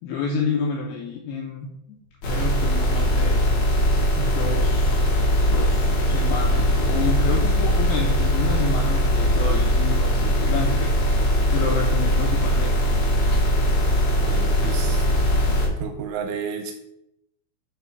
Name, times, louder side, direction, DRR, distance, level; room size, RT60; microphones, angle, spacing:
voice 1, 0.0-1.7 2.2-3.5 4.2-5.0 5.5-12.8, left 4 dB, 85° left, -1 dB, 2.4 m, -29 dB
sound 1, 2.1-15.8, left 2 dB, 50° right, 0.7 m, -37 dB
sound 2, 2.2-15.7, equal, 70° left, 1.5 m, -20 dB
voice 2, 14.2-15.0 15.8-16.7, right 7 dB, 90° right, 4 dB, 3.2 m, -31 dB
8.2 x 3.4 x 4.5 m, 0.79 s
omnidirectional pair, 5.6 m